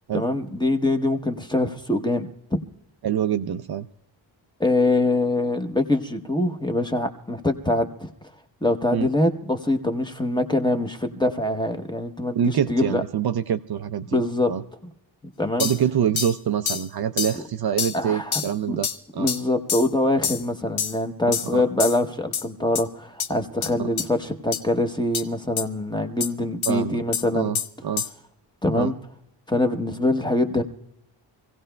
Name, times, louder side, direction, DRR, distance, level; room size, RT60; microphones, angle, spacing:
voice 1, 0.1-2.6 4.6-8.1 8.6-13.0 14.1-14.5 15.4-15.7 17.3-17.4 17.9-18.4 18.7-18.8 19.2-27.5 28.6-28.9 29.5-30.6, left 2 dB, 10° left, 6 dB, 0.8 m, -24 dB
voice 2, 3.0-3.9 8.9-9.1 12.4-14.2 14.5-14.6 15.6-19.3 21.5-21.6 23.8-23.9 26.7-27.0 27.3-28.0 28.7-28.9, right 9 dB, 55° right, 9 dB, 0.5 m, -25 dB
sound 1, 15.6-15.8 16.2-16.4 16.7-16.9 17.2-17.4 17.8-18.0 18.3-18.5 18.8-19.0 19.3-19.4 19.7-19.9 20.2-20.4 20.8-21.0 21.3-21.5 21.8-22.0 22.3-22.4 22.8-22.9 23.2-23.3 23.6-23.7 24.0-24.1 24.5-24.6 25.1-25.2 25.6-25.7 26.2-26.3 26.6-26.7 27.1-27.2 27.5-27.7 28.0-28.1, left 7 dB, 85° left, 0.9 m, -26 dB
26.0 x 16.5 x 2.2 m, 0.79 s
wide cardioid pair, 145°, 47 cm